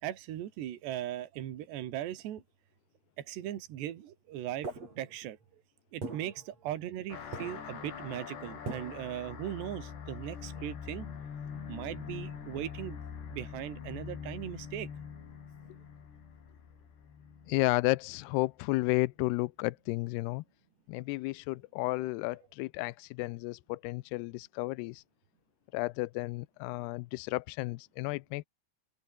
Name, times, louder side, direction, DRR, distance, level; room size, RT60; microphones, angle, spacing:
voice 1, 0.0-2.4 3.2-5.4 5.9-11.1 11.7-13.0 13.3-14.9, right 12 dB, 70° right, 4.1 m, -39 dB
sound 1, 4.6-5.4 6.0-7.1 7.3-7.9 8.7-9.2, right 3 dB, 35° right, 7.8 m, -42 dB
sound 2, 7.1-18.1, left 7 dB, 65° left, 6.2 m, -44 dB
voice 2, 17.5-20.4 20.9-25.0 25.7-28.5, left 22 dB, 85° left, 2.3 m, -32 dB
open air
omnidirectional pair, 5.3 m